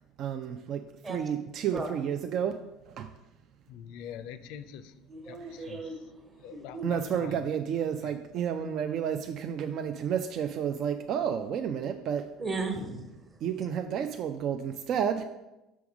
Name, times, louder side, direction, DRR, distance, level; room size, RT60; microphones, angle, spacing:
voice 1, 0.2-0.8 1.1-2.6 2.9-3.1 6.8-12.3 13.4-15.2, right 8 dB, 50° right, 8 dB, 0.3 m, -31 dB
voice 2, 3.7-4.8 5.3-5.4 5.7-5.8 6.4-7.3, left 9 dB, 60° left, 13 dB, 0.4 m, -43 dB
voice 3, 5.1-6.9 12.4-13.1, right 3 dB, 30° right, 4 dB, 1.2 m, -36 dB
6.1 x 3.5 x 6.0 m, 0.99 s
figure-of-eight pair, 65°, 0 cm